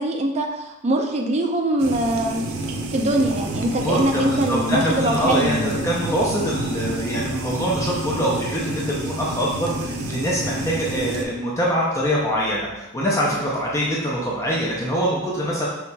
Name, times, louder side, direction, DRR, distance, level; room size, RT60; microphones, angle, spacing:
voice 1, 0.0-2.4 2.9-5.8, right 1 dB, 30° right, 2 dB, 0.5 m, -23 dB
sound 1, 1.8-11.2, right 2 dB, 80° right, 0.5 m, -29 dB
voice 2, 3.8-15.7, equal, 15° left, -5 dB, 0.5 m, -24 dB
5.5 x 3.0 x 2.2 m, 0.95 s
head